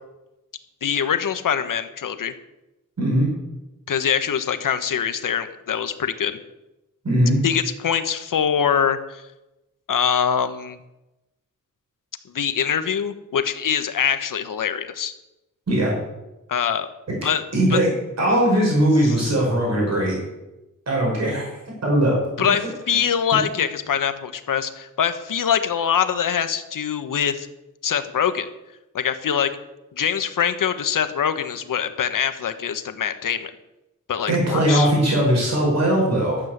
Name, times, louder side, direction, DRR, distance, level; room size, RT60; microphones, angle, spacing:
voice 1, 0.8-2.3 3.9-6.4 7.4-9.2 9.9-10.8 12.3-15.1 16.5-16.9 17.2-17.4 17.7-17.8 19.0-19.2 22.4-27.5 27.8-28.5 28.9-29.5 29.9-33.5 34.1-34.9, left 8 dB, 80° left, 10 dB, 1.1 m, -23 dB
voice 2, 3.0-3.3 7.0-7.4 15.7-15.9 17.5-17.9 18.2-20.2 20.9-22.2 34.3-36.4, right 1 dB, 55° right, -3 dB, 5.7 m, -19 dB
12.5 x 7.7 x 7.9 m, 0.98 s
wide cardioid pair, 105°, 32 cm